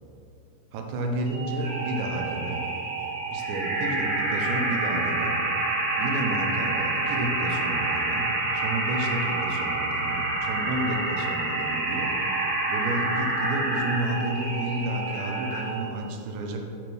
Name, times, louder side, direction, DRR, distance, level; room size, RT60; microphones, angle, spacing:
voice 1, 0.7-2.6 3.3-5.4 6.0-12.2 12.7-16.6, right 1 dB, 85° right, 2 dB, 3.1 m, -31 dB
sound 1, 1.3-15.8, right 2 dB, 55° right, 3.2 m, -28 dB
11.0 x 4.5 x 4.6 m, 2.7 s
omnidirectional pair, 5.0 m